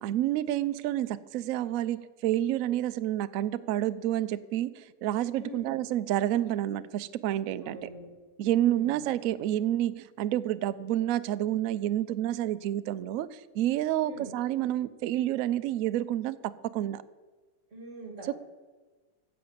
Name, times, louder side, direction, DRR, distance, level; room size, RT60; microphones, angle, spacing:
voice 1, 0.0-4.7 5.0-7.9 8.4-17.0 18.2-18.4, right 12 dB, 70° right, 14 dB, 0.8 m, -29 dB
voice 2, 5.4-5.8 7.6-8.1 8.6-9.0 14.0-14.3 17.7-18.4, right 1 dB, 45° right, 0 dB, 2.6 m, -44 dB
14.0 x 5.8 x 8.0 m, 1.4 s
omnidirectional pair, 1.7 m